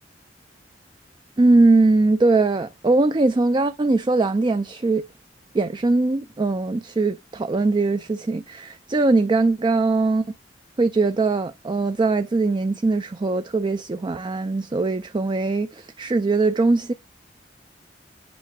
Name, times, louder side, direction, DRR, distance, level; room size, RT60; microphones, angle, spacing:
voice 1, 1.4-5.1 5.5-10.2 10.8-16.9, right 3 dB, 25° right, 0.4 m, -21 dB
8.4 x 5.7 x 2.3 m
head